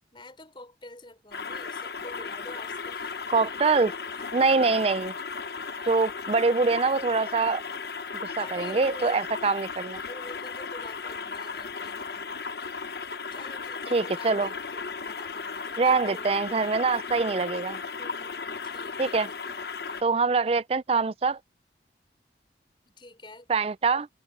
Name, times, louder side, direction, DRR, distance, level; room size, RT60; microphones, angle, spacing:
voice 1, 0.1-3.2 3.5-3.6 4.1-5.2 8.4-9.2 10.0-12.4 13.3-16.6 18.0-20.1 22.9-23.5, left 2 dB, 30° left, 5.5 m, -47 dB
sound 1, 1.3-20.0, left 5 dB, 65° left, 0.9 m, -36 dB
voice 2, 3.3-3.9 4.3-5.1 5.9-7.6 8.4-10.0 13.9-14.5 15.8-17.8 19.0-19.3 20.0-21.4 23.5-24.1, right 4 dB, 35° right, 0.4 m, -24 dB
head